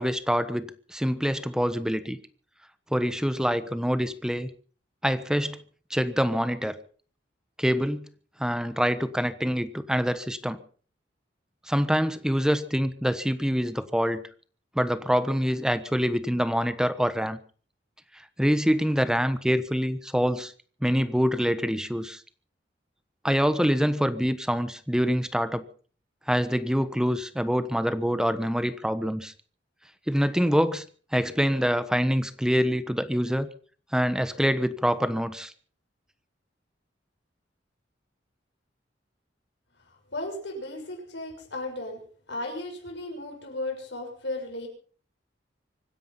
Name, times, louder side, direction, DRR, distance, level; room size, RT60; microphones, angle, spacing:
voice 1, 0.0-2.2 2.9-4.5 5.0-5.6 5.9-6.8 7.6-8.0 8.4-10.6 11.7-14.2 14.7-17.4 18.4-20.5 20.8-22.2 23.2-25.6 26.3-29.3 30.1-30.8 31.1-33.5 33.9-35.5, equal, 5° right, 12 dB, 1.1 m, -25 dB
voice 2, 40.1-42.0 42.3-44.7, left 2 dB, 70° left, 3 dB, 6.7 m, -35 dB
25.0 x 10.5 x 5.6 m, 0.43 s
head